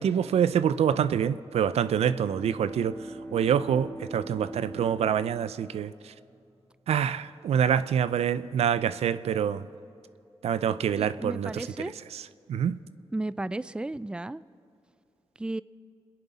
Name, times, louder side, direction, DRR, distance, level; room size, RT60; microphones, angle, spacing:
voice 1, 0.0-2.9 3.3-5.9 6.9-9.7 10.4-11.7 12.1-12.2 12.5-12.8, right 8 dB, 85° right, 14 dB, 0.4 m, -26 dB
Bowed string instrument, 1.7-6.3, right 1 dB, 15° left, 2.4 m, -42 dB
voice 2, 11.0-11.9 13.1-14.4 15.4-15.6, right 2 dB, 10° right, 18 dB, 0.4 m, -33 dB
24.0 x 10.5 x 4.2 m, 2.6 s
cardioid pair, 50°, 10 cm